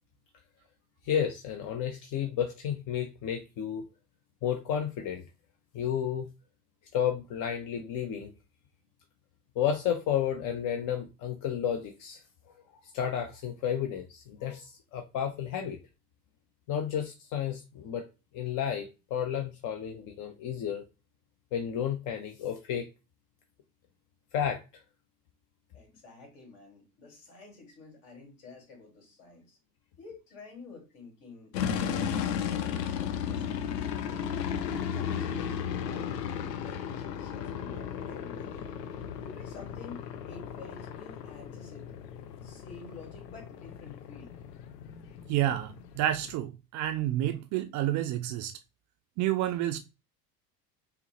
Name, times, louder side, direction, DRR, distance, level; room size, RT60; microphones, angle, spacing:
voice 1, 1.0-3.8 4.4-5.2 5.7-6.3 6.9-8.3 9.6-12.2 12.9-15.8 16.7-18.0 18.3-20.8 21.5-22.9 24.3-24.6, left 9 dB, 40° left, 0.6 m, -32 dB
voice 2, 25.7-29.6 30.0-31.6 31.8-33.0 33.3-36.2 36.6-38.7 39.2-41.9 42.4-44.4, left 3 dB, 60° left, 2.0 m, -49 dB
sound 1, 31.5-46.3, left 8 dB, 75° left, 0.7 m, -35 dB
voice 3, 45.3-48.5 49.2-49.8, right 13 dB, 40° right, 0.4 m, -29 dB
5.6 x 2.0 x 2.9 m
hypercardioid pair, 70°, 49 cm